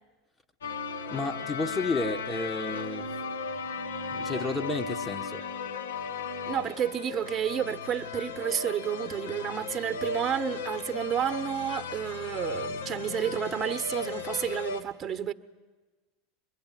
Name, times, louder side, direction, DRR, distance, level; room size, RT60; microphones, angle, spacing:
sound 1, 0.6-14.8, left 4 dB, 80° left, 2.0 m, -36 dB
voice 1, 1.1-3.1 4.1-5.4, left 3 dB, 15° left, 1.4 m, -32 dB
voice 2, 6.5-15.3, right 9 dB, 30° right, 1.3 m, -31 dB
24.5 x 23.0 x 9.3 m
hypercardioid pair, 80°, 0 cm